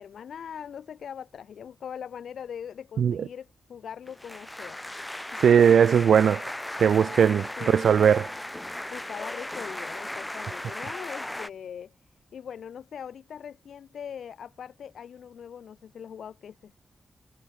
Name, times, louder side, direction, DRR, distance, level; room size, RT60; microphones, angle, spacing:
voice 1, 0.0-4.8 5.3-5.8 7.0-7.3 7.6-7.9 8.9-16.7, left 8 dB, 90° left, 5.9 m, -41 dB
sound 1, 4.1-11.5, left 1 dB, 10° left, 0.5 m, -36 dB
voice 2, 5.4-6.4 6.8-8.3, right 8 dB, 85° right, 0.4 m, -19 dB
wide cardioid pair, 115°, 0 cm